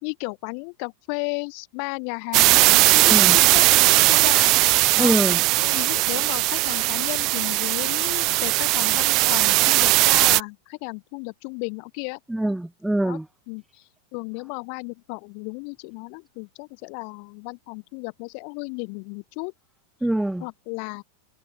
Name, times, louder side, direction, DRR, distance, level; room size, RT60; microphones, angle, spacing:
voice 1, 0.0-4.5 5.0-5.2 5.6-12.2 13.0-13.2 13.5-13.8 14.1-19.5 20.4-21.0, left 40 dB or more, 45° left, 1.1 m, -34 dB
sound 1, 2.3-10.4, right 22 dB, 40° right, 0.5 m, -19 dB
voice 2, 3.0-3.4 5.0-5.4 12.3-13.3 20.0-20.4, right 1 dB, 5° right, 0.9 m, -24 dB
figure-of-eight pair, 90°, 0 cm